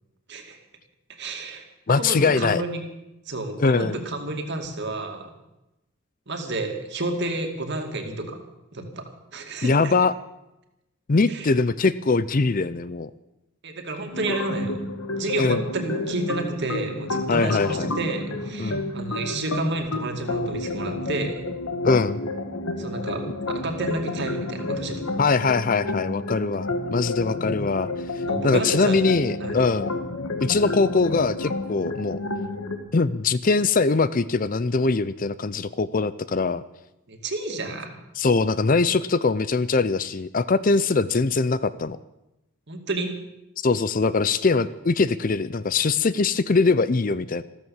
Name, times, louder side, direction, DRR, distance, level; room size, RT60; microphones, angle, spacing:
voice 1, 1.1-2.8 3.3-5.3 6.3-8.4 8.7-9.9 11.3-11.5 13.6-14.8 15.2-21.4 22.8-23.2 23.5-25.0 28.3-29.0 29.4-29.6 37.1-38.0 42.7-43.2, right 2 dB, 50° right, 4 dB, 2.5 m, -30 dB
voice 2, 1.9-2.6 3.6-4.0 9.6-10.1 11.1-13.1 15.4-15.6 17.3-17.9 18.6-18.8 21.8-22.2 25.2-27.9 28.4-29.9 30.4-32.2 32.9-36.6 38.2-42.0 43.6-47.4, left 4 dB, 40° left, 16 dB, 0.5 m, -22 dB
sound 1, 14.1-32.8, left 2 dB, 70° left, 1.8 m, -30 dB
14.0 x 14.0 x 7.2 m, 0.92 s
head